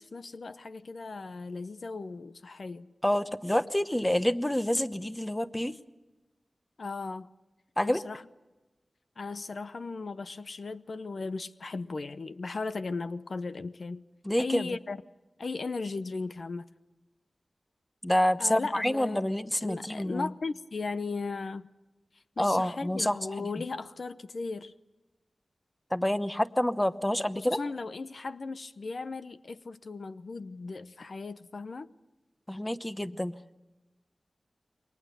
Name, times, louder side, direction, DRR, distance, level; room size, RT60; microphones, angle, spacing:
voice 1, 0.0-2.9 6.8-7.3 7.8-8.2 9.2-14.0 14.4-15.0 15.4-16.7 18.4-19.3 19.6-21.7 22.1-24.7 27.4-31.9, left 3 dB, 70° left, 0.8 m, -37 dB
voice 2, 3.0-5.8 7.8-8.0 14.2-14.8 18.0-20.3 22.4-23.5 25.9-27.6 32.5-33.5, left 1 dB, 15° left, 0.9 m, -28 dB
28.5 x 23.0 x 6.8 m
wide cardioid pair, 75°, 0 cm